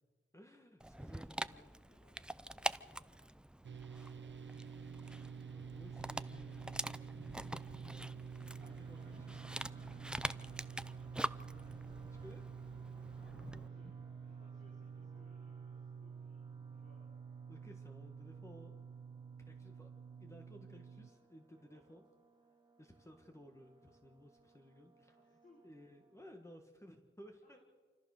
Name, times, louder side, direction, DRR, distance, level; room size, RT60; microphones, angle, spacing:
voice 1, 0.3-1.7 5.5-7.1 7.8-9.5 12.1-12.4 13.8-14.0 17.5-18.7 19.5-19.9 20.2-22.0 22.8-25.2 25.6-27.6, equal, 15° left, 3 dB, 1.7 m, -57 dB
voice 2, 0.8-3.3 3.9-4.5 13.2-13.9 14.2-17.1 21.7-21.8 25.2-25.6 27.4-27.6, left 1 dB, 45° left, -3 dB, 5.6 m, -69 dB
Dog, 0.8-13.7, right 1 dB, 5° right, 0.5 m, -45 dB
sound 1, 3.6-21.1, right 6 dB, 75° right, 0.9 m, -49 dB
sound 2, 8.6-26.5, right 3 dB, 25° right, 2.8 m, -68 dB
27.0 x 14.5 x 6.7 m, 1.5 s
wide cardioid pair, 115°, 19 cm